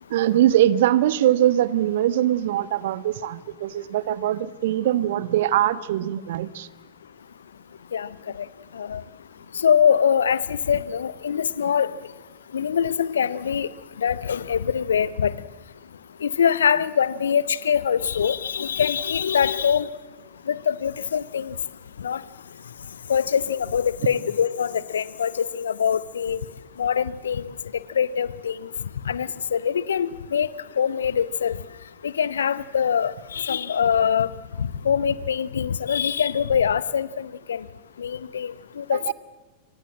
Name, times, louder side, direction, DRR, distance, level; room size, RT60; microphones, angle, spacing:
voice 1, 0.1-6.7 38.9-39.1, right 12 dB, 55° right, 17 dB, 1.2 m, -22 dB
voice 2, 7.9-8.5 8.7-9.0 9.5-12.0 12.5-13.7 14.0-15.3 16.2-19.9 20.5-21.5 22.0-22.2 23.1-26.4 26.8-27.5 27.9-28.7 29.0-30.5 30.8-31.6 32.0-34.3 34.6-37.6 38.0-39.1, left 7 dB, 70° left, 18 dB, 1.0 m, -23 dB
27.0 x 25.5 x 7.5 m, 1.2 s
figure-of-eight pair, 90°, 0 cm